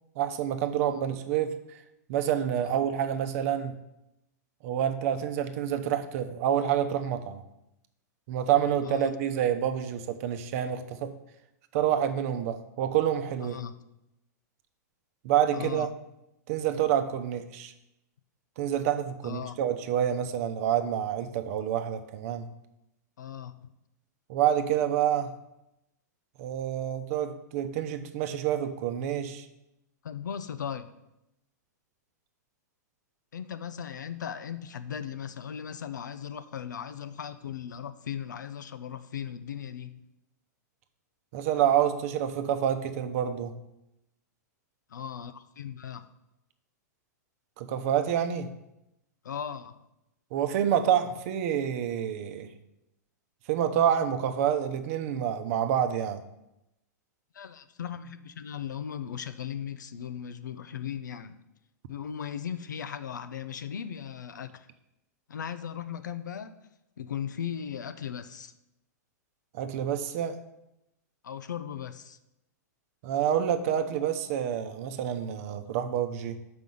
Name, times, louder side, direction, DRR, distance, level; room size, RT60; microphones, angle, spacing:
voice 1, 0.2-1.8 2.1-3.7 4.6-7.4 8.3-11.1 11.7-13.6 15.2-15.9 16.5-17.7 18.6-22.5 24.3-25.3 26.4-29.5 41.3-43.5 47.6-48.5 50.3-52.5 53.5-56.2 69.5-70.4 73.0-76.4, right 9 dB, 55° right, 8 dB, 0.8 m, -28 dB
voice 2, 13.4-13.7 15.5-15.9 19.2-19.6 23.2-23.7 30.0-30.9 33.3-40.0 44.9-46.1 49.2-49.8 57.3-61.4 61.9-64.7 65.3-66.6 67.0-68.5 71.2-72.2, left 8 dB, 90° left, 12 dB, 0.5 m, -37 dB
6.3 x 5.2 x 5.4 m, 0.87 s
hypercardioid pair, 120°, 10 cm